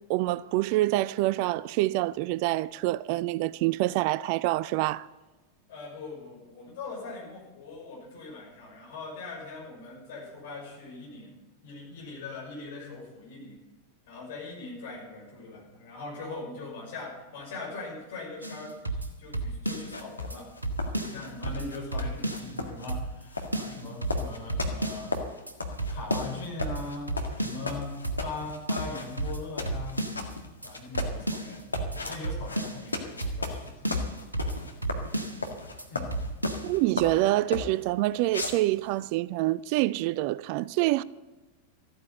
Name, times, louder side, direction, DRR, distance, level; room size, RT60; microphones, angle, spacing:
voice 1, 0.0-5.1 36.6-41.0, right 17 dB, 45° right, 0.4 m, -26 dB
voice 2, 5.7-11.3 11.6-13.6 14.1-20.5 20.9-25.2 25.9-27.9 28.2-30.1 30.6-31.6 31.9-33.9 35.9-36.1, left 3 dB, 55° left, 5.8 m, -41 dB
sound 1, 18.4-20.0 20.3-20.4 20.6-22.6 22.9-23.3 23.5-25.2 25.5-25.6 25.8-27.8 28.0-28.4 28.7-30.3 30.6-30.7 30.9-32.9 33.2-33.6 33.8-35.5 35.8-35.9 36.1-36.7, right 2 dB, 85° right, 1.5 m, -33 dB
sound 2, 19.9-37.8 38.3-39.0, left 3 dB, 80° left, 1.7 m, -35 dB
14.0 x 9.5 x 8.0 m
figure-of-eight pair, 90°, 0 cm